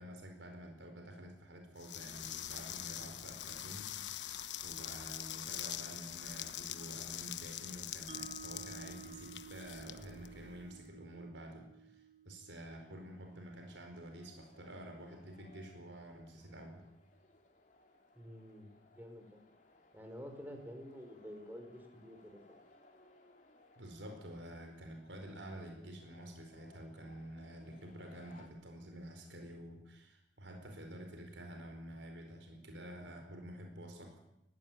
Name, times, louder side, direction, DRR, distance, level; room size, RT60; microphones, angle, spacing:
voice 1, 0.0-4.3 4.6-16.8 23.8-34.2, right 1 dB, 85° right, 4 dB, 4.7 m, -49 dB
sound 1, 1.8-10.8, left 12 dB, 80° left, 1.1 m, -44 dB
Mallet percussion, 8.1-14.2, right 7 dB, 40° right, 1.2 m, -54 dB
sound 2, 12.6-28.5, left 2 dB, 45° left, 3.7 m, -64 dB
voice 2, 18.2-19.4 19.9-22.6, equal, 10° right, 5 dB, 4.6 m, -49 dB
20.5 x 16.5 x 9.3 m, 0.84 s
head